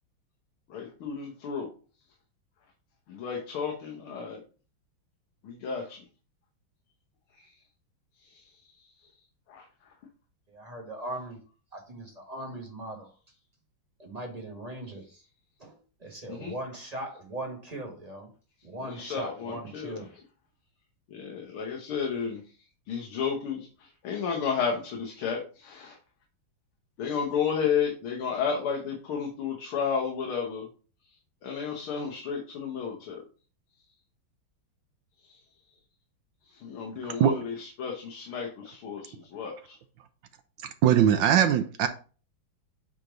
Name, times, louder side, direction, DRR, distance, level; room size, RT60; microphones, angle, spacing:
voice 1, 0.7-1.7 3.1-4.4 5.4-6.0 7.3-7.5 8.2-8.7 9.0-9.1 9.5-9.9 16.3-16.5 18.8-20.0 21.1-22.4 22.9-26.0 27.0-30.7 31.4-33.2 35.3-35.4 36.4-39.8, left 6 dB, 85° left, 2.0 m, -32 dB
voice 2, 10.5-11.4 11.7-13.1 14.0-15.2 15.6-18.3 18.6-20.1, right 1 dB, 20° right, 1.3 m, -39 dB
voice 3, 37.0-37.4 40.8-41.9, right 9 dB, 75° right, 1.2 m, -21 dB
8.3 x 3.1 x 3.9 m
omnidirectional pair, 2.3 m